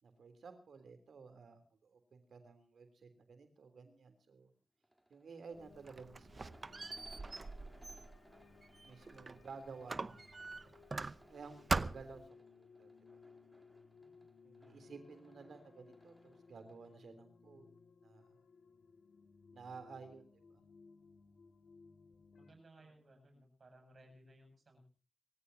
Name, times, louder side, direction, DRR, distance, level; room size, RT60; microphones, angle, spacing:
voice 1, 0.0-4.5 5.1-6.9 7.6-8.0 8.8-10.2 11.3-12.9 14.4-17.6 18.0-18.3 19.5-20.6, right 4 dB, 85° right, 9 dB, 3.4 m, -54 dB
sound 1, 4.8-17.1, right 1 dB, 15° right, 3.7 m, -66 dB
sound 2, 5.5-22.5, left 4 dB, 90° left, 2.3 m, -62 dB
Squeak, 5.6-9.4 9.9-11.4 11.7-12.3, right 3 dB, 45° right, 0.8 m, -41 dB
voice 2, 14.0-14.3 22.4-24.9, right 1 dB, 65° right, 5 dB, 7.8 m, -62 dB
27.0 x 15.5 x 2.8 m, 0.35 s
cardioid pair, 50°, 0 cm